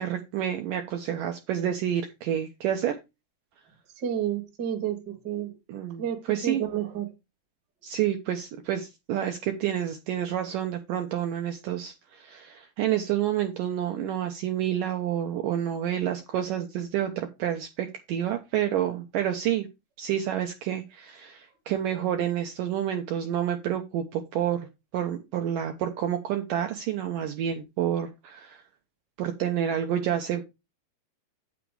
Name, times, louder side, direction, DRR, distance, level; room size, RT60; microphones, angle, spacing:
voice 1, 0.0-3.0 5.7-6.6 7.8-19.7 20.0-24.7 24.9-28.6 29.2-30.4, right 10 dB, 75° right, 2.1 m, -29 dB
voice 2, 4.0-5.5 6.0-7.1, right 10 dB, 40° right, 1.5 m, -30 dB
8.7 x 6.1 x 4.7 m
omnidirectional pair, 4.6 m